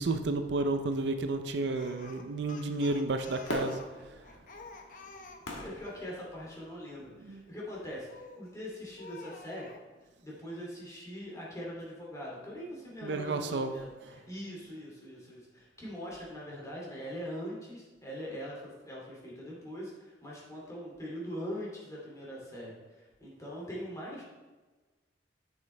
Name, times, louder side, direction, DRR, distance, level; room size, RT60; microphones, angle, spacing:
voice 1, 0.0-3.8 7.2-7.4 13.0-13.7, right 2 dB, 70° right, 8 dB, 0.5 m, -31 dB
Speech, 1.7-6.1 8.1-8.5 9.0-9.8, left 3 dB, 45° left, 0.8 m, -49 dB
Fireworks, 3.5-6.8 7.4-7.5, left 1 dB, 85° left, 1.5 m, -41 dB
voice 2, 5.6-9.7 10.2-13.9 14.2-24.2, equal, 20° left, -5 dB, 2.5 m, -42 dB
7.6 x 7.5 x 3.3 m, 1.3 s
head